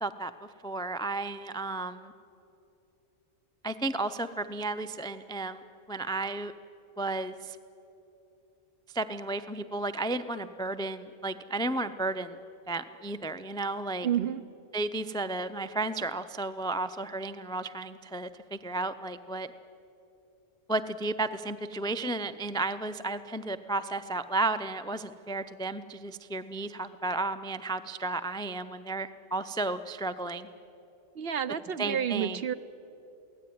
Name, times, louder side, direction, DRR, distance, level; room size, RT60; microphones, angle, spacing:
voice 1, 0.0-2.1 3.6-5.6 5.9-6.5 7.0-7.6 8.9-12.4 12.7-14.1 14.7-19.5 20.7-30.5 31.8-32.4, right 2 dB, 5° left, 12 dB, 0.3 m, -33 dB
voice 2, 14.0-14.4 31.2-32.5, right 9 dB, 60° right, 14 dB, 0.8 m, -30 dB
23.5 x 17.0 x 9.4 m, 2.9 s
omnidirectional pair, 1.3 m